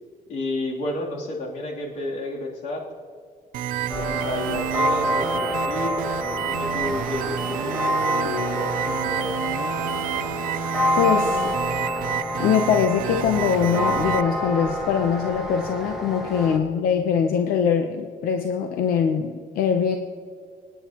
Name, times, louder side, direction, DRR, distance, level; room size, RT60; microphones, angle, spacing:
voice 1, 0.3-2.9 3.9-9.5, left 2 dB, 60° left, -3 dB, 3.1 m, -31 dB
sound 1, 3.5-14.2, right 13 dB, 70° right, 0.5 m, -30 dB
sound 2, 3.9-16.6, equal, ahead, 1.3 m, -27 dB
voice 2, 11.0-11.5 12.4-20.0, left 7 dB, 90° left, 5 dB, 0.8 m, -22 dB
25.5 x 9.8 x 3.0 m, 2.1 s
cardioid pair, 180°, 15 cm